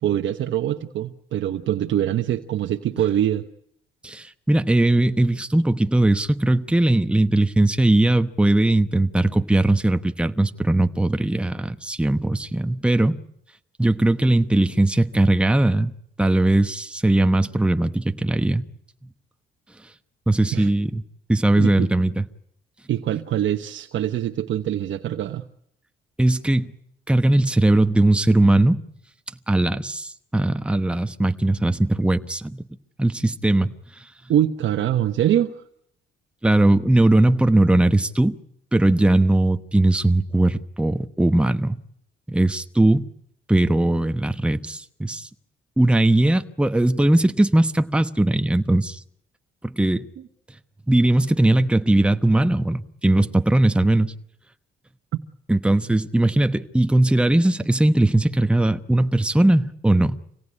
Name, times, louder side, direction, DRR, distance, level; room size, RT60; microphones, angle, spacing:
voice 1, 0.0-3.5 20.5-20.7 21.6-21.9 22.9-25.4 34.3-35.5, right 11 dB, 70° right, 1.0 m, -23 dB
voice 2, 4.0-13.2 13.8-15.9 16.2-18.6 20.3-21.0 21.3-22.2 26.2-26.7 27.1-28.8 29.5-32.6 33.0-33.7 36.4-38.4 38.7-41.8 42.3-43.1 43.5-45.3 45.8-49.0 49.6-50.1 50.9-54.1 55.5-60.2, right 1 dB, 5° right, 1.0 m, -19 dB
26.0 x 18.0 x 9.8 m
cardioid pair, 90°, 20 cm